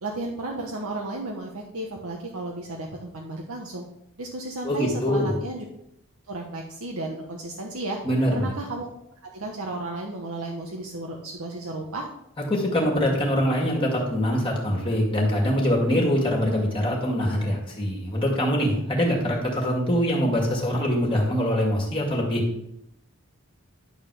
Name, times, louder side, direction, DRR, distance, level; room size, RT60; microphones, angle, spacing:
voice 1, 0.0-3.8 4.2-5.7 6.3-8.0 8.3-8.9 9.2-12.1, right 2 dB, 75° right, 0 dB, 1.1 m, -33 dB
voice 2, 4.6-5.3 8.0-8.5 12.5-22.4, equal, 25° left, -1 dB, 1.9 m, -23 dB
11.0 x 4.0 x 6.7 m, 0.79 s
head